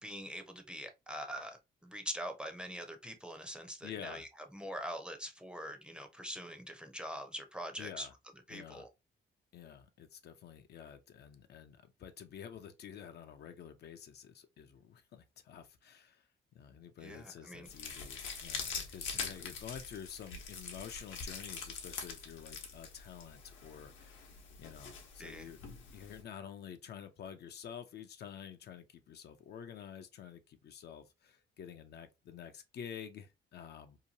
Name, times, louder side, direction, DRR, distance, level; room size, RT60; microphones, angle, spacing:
voice 1, 0.0-8.1 8.5-8.9 17.0-17.7 25.2-25.5, equal, 5° right, 0.6 m, -43 dB
voice 2, 3.8-4.3 7.8-8.1 8.5-8.9 9.5-24.3 24.6-25.6 25.9-34.0, left 8 dB, 55° left, 0.4 m, -49 dB
sound 1, 17.6-26.2, left 5 dB, 80° left, 0.8 m, -44 dB
2.8 x 2.2 x 2.7 m
cardioid pair, 90°, 20 cm